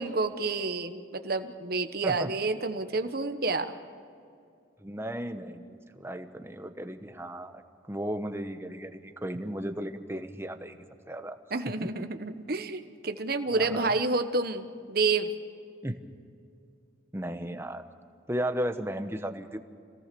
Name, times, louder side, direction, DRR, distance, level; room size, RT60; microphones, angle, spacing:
voice 1, 0.0-3.8 11.5-15.3, right 3 dB, 50° right, 8 dB, 1.1 m, -29 dB
voice 2, 4.8-7.6 7.9-10.8 11.1-11.4 11.8-11.9 13.5-14.0 15.8-16.0 17.1-17.8 18.3-19.6, right 1 dB, 15° right, 7 dB, 1.0 m, -35 dB
26.0 x 18.0 x 6.9 m, 2.4 s
head